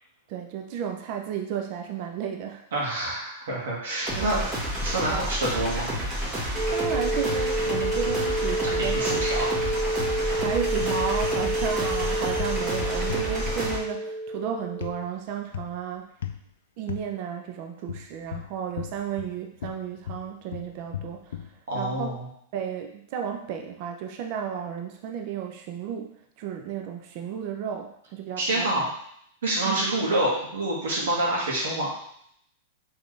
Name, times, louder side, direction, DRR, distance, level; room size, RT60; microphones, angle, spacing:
voice 1, 0.3-2.6 4.2-4.5 5.1-5.3 6.7-9.2 10.4-16.1 16.8-21.4 21.7-22.1 22.5-28.9 29.6-29.8 30.9-31.1, right 8 dB, 50° right, 3 dB, 0.6 m, -33 dB
voice 2, 2.7-4.5 4.8-5.9 8.8-9.7 21.7-22.3 28.4-28.9 29.4-31.9, right 1 dB, 80° right, -4 dB, 2.0 m, -27 dB
sound 1, 4.0-13.8, equal, 25° right, 1.7 m, -30 dB
sound 2, 4.8-5.3 5.6-6.1 7.3-8.3 9.5-10.5 10.8-13.8 14.8-15.0 15.5-15.8 16.2-16.4 16.9-17.1 17.9-19.3 19.6-21.5, left 10 dB, 85° left, 0.4 m, -37 dB
sound 3, 6.5-15.0, right 2 dB, 10° left, 1.3 m, -29 dB
4.2 x 3.8 x 3.3 m, 0.69 s
hypercardioid pair, 130°, 0 cm